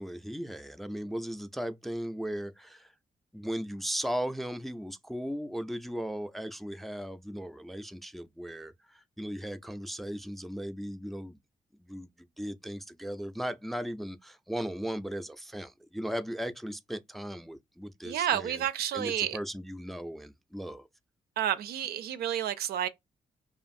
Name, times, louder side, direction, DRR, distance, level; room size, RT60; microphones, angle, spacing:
voice 1, 0.0-2.9 3.3-11.4 11.8-18.6 18.9-20.9, equal, ahead, 0.3 m, -37 dB
voice 2, 18.0-19.4 21.4-22.9, right 10 dB, 75° right, 0.4 m, -30 dB
2.5 x 2.4 x 2.5 m
supercardioid pair, 55°, 16 cm